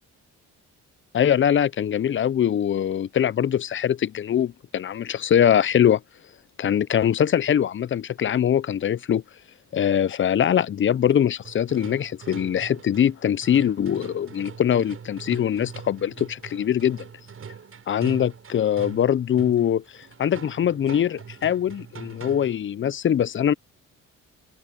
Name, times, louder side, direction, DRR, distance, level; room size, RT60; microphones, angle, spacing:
voice 1, 1.1-6.0 6.6-9.2 9.7-17.1 17.9-19.8 20.2-23.5, left 9 dB, 40° left, 0.6 m, -22 dB
sound 1, 11.4-22.7, right 6 dB, 45° right, 7.7 m, -42 dB
open air
cardioid pair, 90°, 30 cm